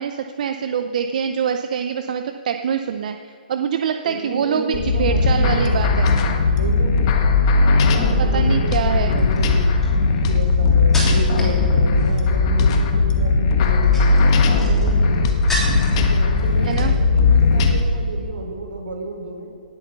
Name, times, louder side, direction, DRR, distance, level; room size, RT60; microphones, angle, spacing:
voice 1, 0.0-6.1 8.2-9.2 16.6-16.9, right 7 dB, 55° right, 7 dB, 0.7 m, -24 dB
voice 2, 4.0-6.1 6.5-7.0 7.6-9.7 10.0-15.3 15.9-19.5, right 2 dB, 80° right, 0 dB, 4.7 m, -32 dB
sound 1, 4.7-17.8, left 3 dB, 35° left, 1.4 m, -17 dB
sound 2, 8.1-8.5 9.2-11.6 11.9-12.4 13.6-16.0 16.4-17.0 17.3-17.5, equal, 5° left, 3.3 m, -31 dB
18.5 x 7.9 x 6.9 m, 2.3 s
hypercardioid pair, 150°, 5 cm